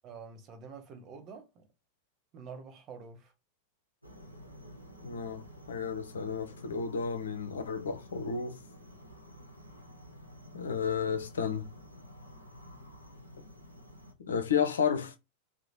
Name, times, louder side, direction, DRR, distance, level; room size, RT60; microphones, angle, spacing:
voice 1, 0.0-1.5 2.3-3.3, right 5 dB, 35° right, 0.7 m, -47 dB
sound 1, 4.0-14.1, equal, 90° right, 0.6 m, -51 dB
voice 2, 5.0-8.6 10.5-11.7 14.3-15.2, left 6 dB, 65° left, 0.5 m, -32 dB
2.8 x 2.1 x 2.7 m
figure-of-eight pair, 90°, 0 cm